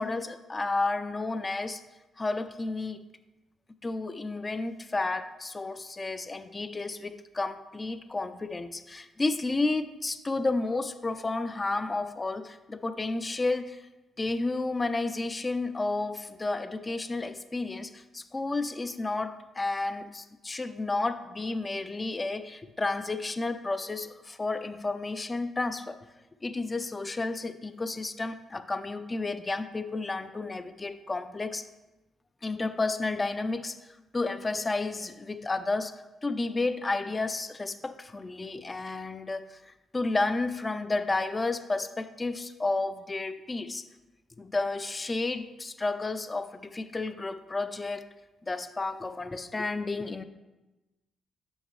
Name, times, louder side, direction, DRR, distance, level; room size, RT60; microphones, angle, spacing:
voice 1, 0.0-1.8 2.2-3.0 3.8-13.8 14.2-26.0 26.4-31.7 32.4-33.8 34.1-35.9 36.2-39.6 39.9-43.9 44.4-48.0 48.5-50.2, left 3 dB, 25° left, 11 dB, 0.4 m, -31 dB
6.3 x 6.3 x 3.1 m, 1.1 s
cardioid pair, 75°, 0 cm